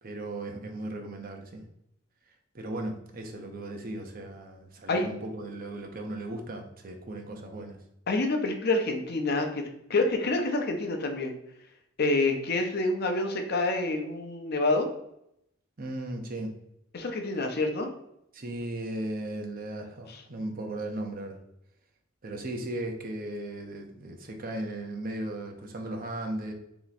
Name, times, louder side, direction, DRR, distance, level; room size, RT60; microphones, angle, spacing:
voice 1, 0.0-1.6 2.5-7.8 15.8-16.6 18.3-21.4 22.2-26.5, right 1 dB, 45° right, 3 dB, 0.7 m, -36 dB
voice 2, 8.1-11.3 12.0-14.9 16.9-17.9, left 2 dB, 55° left, 4 dB, 0.6 m, -27 dB
3.3 x 3.0 x 4.0 m, 0.78 s
head